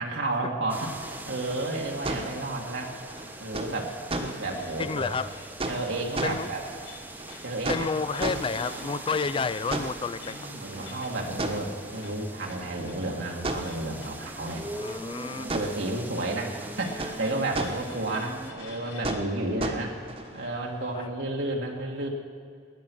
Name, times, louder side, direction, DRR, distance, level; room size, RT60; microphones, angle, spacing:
voice 1, 0.0-2.9 3.4-5.2 5.7-6.6 7.4-7.8 8.2-9.0 10.2-14.7 15.3-20.0 20.3-22.1, right 2 dB, 85° right, -1 dB, 1.9 m, -32 dB
sound 1, 0.7-18.5, right 1 dB, 10° right, 1.0 m, -43 dB
sound 2, 0.7-20.5, right 2 dB, 35° right, 1.3 m, -37 dB
sound 3, 3.3-21.1, left 5 dB, 70° left, 2.5 m, -52 dB
voice 2, 4.8-5.3 6.2-6.5 7.7-10.4 10.8-10.9 14.8-15.5 20.9-21.1, left 4 dB, 30° left, 15 dB, 0.4 m, -30 dB
20.5 x 9.7 x 6.3 m, 2.3 s
head